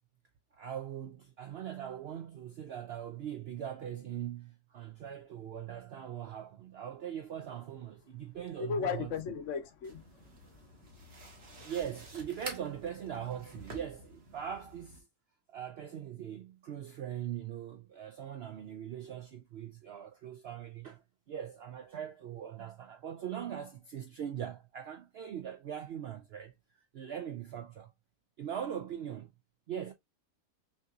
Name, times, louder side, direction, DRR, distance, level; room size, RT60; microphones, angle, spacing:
voice 1, 0.5-9.1 11.6-15.1 15.5-26.5 26.9-27.9 28.4-29.3 29.7-29.9, right 9 dB, 70° right, 0.6 m, -41 dB
voice 2, 8.6-10.7 11.0-11.6, left 6 dB, 65° left, 0.9 m, -37 dB
sound 1, 9.8-15.0, right 2 dB, 45° right, 1.5 m, -49 dB
5.9 x 2.7 x 2.4 m
omnidirectional pair, 1.5 m